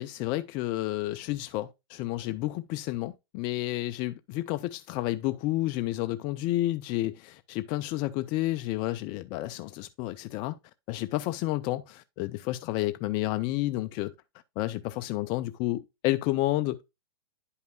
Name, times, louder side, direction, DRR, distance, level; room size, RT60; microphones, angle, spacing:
voice 1, 0.0-10.6 10.9-14.1 14.6-16.8, left 16 dB, 35° left, 0.4 m, -30 dB
10.5 x 5.5 x 2.2 m
hypercardioid pair, 130°, 14 cm